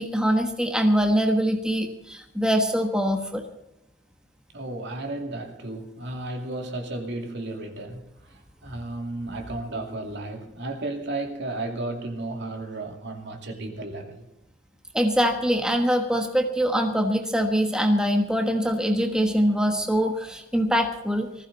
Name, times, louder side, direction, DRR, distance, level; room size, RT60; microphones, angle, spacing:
voice 1, 0.0-3.4 14.9-21.3, equal, 5° right, 1.3 m, -23 dB
voice 2, 4.5-14.3, right 2 dB, 60° right, 2.6 m, -34 dB
19.5 x 15.5 x 4.1 m
head